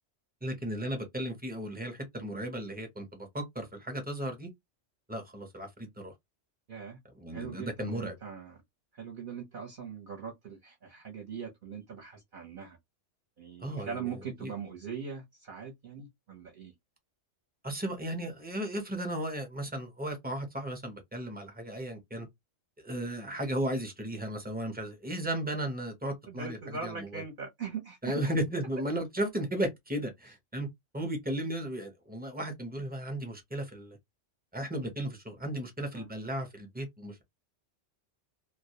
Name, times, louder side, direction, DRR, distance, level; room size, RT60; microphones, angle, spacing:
voice 1, 0.4-4.5 5.1-6.1 7.1-8.2 13.6-14.5 17.6-22.3 22.8-27.2 28.0-30.7 30.9-34.0 34.5-37.2, right 1 dB, 10° right, 0.4 m, -35 dB
voice 2, 7.3-8.6 9.0-12.8 13.4-16.7 26.3-28.2 35.9-36.0, right 6 dB, 50° right, 0.7 m, -41 dB
2.3 x 2.1 x 2.7 m
omnidirectional pair, 1.3 m